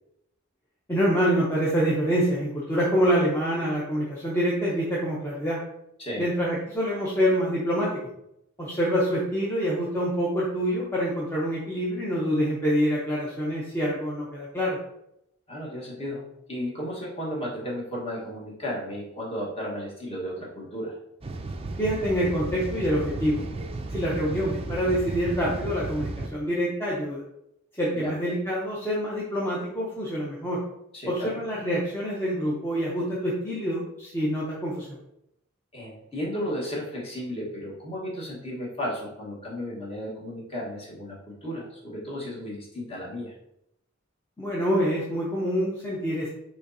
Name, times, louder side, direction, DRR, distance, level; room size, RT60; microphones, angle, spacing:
voice 1, 0.9-5.6 6.2-8.0 8.6-14.8 21.8-23.4 23.9-27.2 27.8-30.6 31.1-35.0 44.4-46.3, equal, 10° left, -6 dB, 0.7 m, -26 dB
voice 2, 15.5-16.2 16.5-20.9 28.0-28.1 30.9-31.4 35.7-43.3, equal, 30° left, -4 dB, 1.4 m, -34 dB
sound 1, 21.2-26.3, right 2 dB, 30° right, 0.4 m, -34 dB
6.2 x 3.1 x 2.7 m, 0.80 s
head